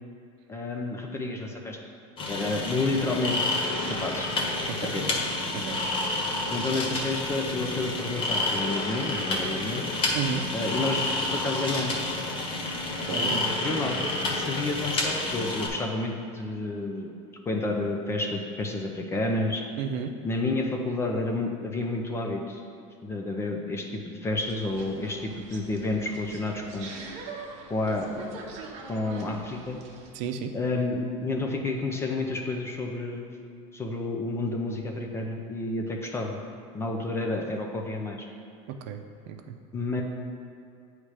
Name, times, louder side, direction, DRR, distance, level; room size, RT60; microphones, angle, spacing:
voice 1, 0.5-1.8 2.3-3.6 3.9-4.3 4.8-5.2 6.5-9.9 10.5-12.0 13.1-17.1 17.5-19.6 20.2-22.6 23.0-26.9 27.7-28.5 28.9-29.8 30.5-33.4 33.7-36.4 36.7-38.2 39.7-40.0, left 2 dB, 15° left, 2 dB, 0.5 m, -30 dB
sound 1, 2.2-15.7, left 2 dB, 30° left, 1.0 m, -29 dB
voice 2, 10.1-10.4 13.1-13.4 19.8-20.1 30.1-30.5 38.7-39.6, right 7 dB, 65° right, 6 dB, 0.6 m, -33 dB
sound 2, 24.4-30.1, right 4 dB, 45° right, 0.9 m, -43 dB
8.6 x 3.2 x 4.8 m, 2.6 s
cardioid pair, 155°, 16 cm